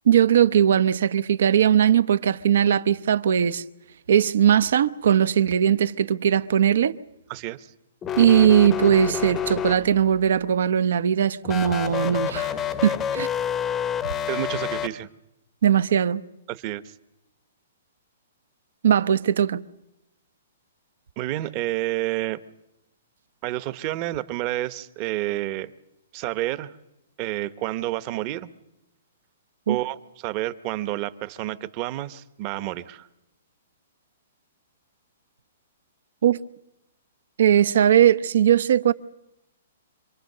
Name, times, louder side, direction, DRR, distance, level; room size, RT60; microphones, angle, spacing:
voice 1, 0.1-3.6 4.1-6.9 8.2-12.5 12.8-13.3 15.6-16.2 18.8-19.6 29.7-29.8 36.2-36.4 37.4-38.9, right 9 dB, 70° right, 0.8 m, -19 dB
voice 2, 7.3-7.7 14.3-15.1 16.5-16.8 21.2-22.4 23.4-25.7 26.1-26.7 27.2-28.5 29.7-33.1, right 16 dB, 35° right, 0.9 m, -29 dB
sound 1, 8.0-10.2 11.4-14.9, left 8 dB, 20° left, 0.8 m, -28 dB
27.0 x 22.0 x 6.7 m
hypercardioid pair, 155°, 0 cm